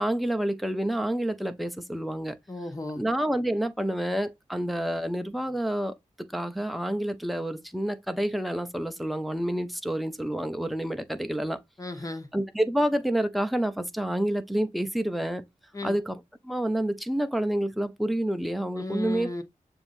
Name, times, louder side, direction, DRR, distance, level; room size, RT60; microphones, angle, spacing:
voice 1, 0.0-2.4 3.0-11.6 12.3-15.4 15.8-16.2 16.4-19.3, right 1 dB, ahead, 0.7 m, -28 dB
voice 2, 2.5-3.0 11.8-12.3 15.7-16.0 18.7-19.4, left 2 dB, 25° left, 1.2 m, -35 dB
6.9 x 2.7 x 2.6 m
cardioid pair, 55°, 14 cm